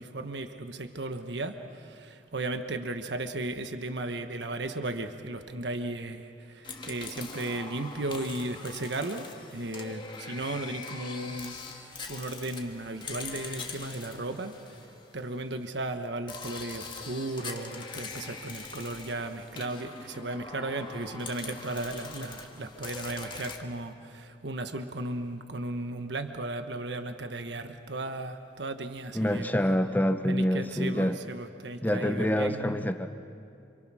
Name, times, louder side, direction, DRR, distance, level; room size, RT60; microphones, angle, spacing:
voice 1, 0.0-14.8 15.1-29.5 30.3-32.9, right 2 dB, 80° right, 7 dB, 1.3 m, -35 dB
sound 1, 6.6-15.5 16.3-23.6, left 4 dB, 25° left, 1.8 m, -43 dB
voice 2, 29.1-31.2 31.8-33.1, equal, 10° left, 8 dB, 0.8 m, -26 dB
28.0 x 26.5 x 6.3 m, 2.5 s
head